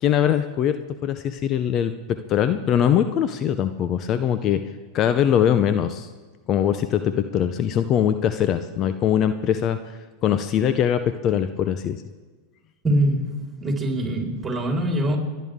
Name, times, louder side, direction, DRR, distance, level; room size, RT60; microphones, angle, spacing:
voice 1, 0.0-0.8 1.0-4.6 4.9-6.1 6.5-9.8 10.2-12.0, left 9 dB, 40° left, 10 dB, 0.7 m, -22 dB
voice 2, 12.8-15.2, right 1 dB, 15° right, 0 dB, 4.4 m, -23 dB
28.5 x 10.5 x 3.7 m, 1.3 s
hypercardioid pair, 100°, 0 cm